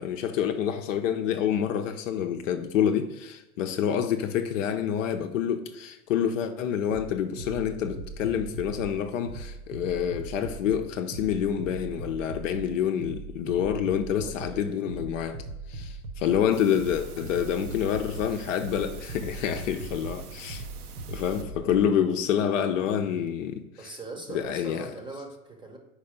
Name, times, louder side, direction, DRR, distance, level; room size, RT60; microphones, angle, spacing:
voice 1, 0.0-15.4 15.7-20.6 21.1-23.6 24.3-24.9, left 9 dB, 55° left, 0.7 m, -27 dB
sound 1, 6.9-21.9, right 3 dB, 60° right, 1.0 m, -40 dB
voice 2, 14.2-14.8 23.8-25.8, right 3 dB, 10° right, 0.8 m, -41 dB
sound 2, 16.5-21.4, right 3 dB, 80° right, 0.8 m, -44 dB
5.1 x 4.2 x 5.1 m
hypercardioid pair, 95°, 45 cm